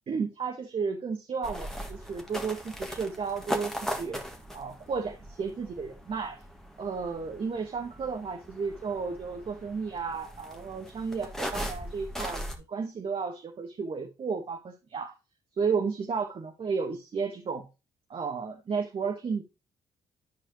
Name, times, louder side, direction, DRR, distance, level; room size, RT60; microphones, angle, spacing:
voice 1, 0.1-3.7 4.0-4.2 4.5-6.4 6.8-15.1 15.6-17.6 18.1-19.4, right 5 dB, 50° right, 3 dB, 1.2 m, -33 dB
sound 1, 1.4-12.6, equal, 5° left, 1.6 m, -39 dB
10.5 x 4.8 x 2.9 m, 0.28 s
supercardioid pair, 55°, 12 cm